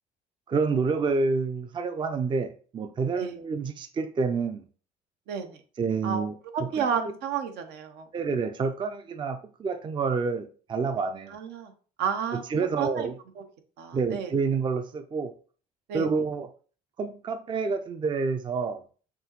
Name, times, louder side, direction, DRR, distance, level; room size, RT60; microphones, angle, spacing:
voice 1, 0.5-4.7 5.8-6.3 6.8-6.9 8.1-11.4 12.3-13.2 13.9-15.3 15.9-16.5 17.0-18.8, right 4 dB, 30° right, 0.4 m, -28 dB
voice 2, 5.3-5.6 6.0-6.3 6.5-8.1 11.3-11.7 12.0-13.1 13.4-13.5 13.8-14.3 15.9-16.1, right 7 dB, 80° right, 0.8 m, -31 dB
5.9 x 2.7 x 3.0 m
cardioid pair, 110°, 17 cm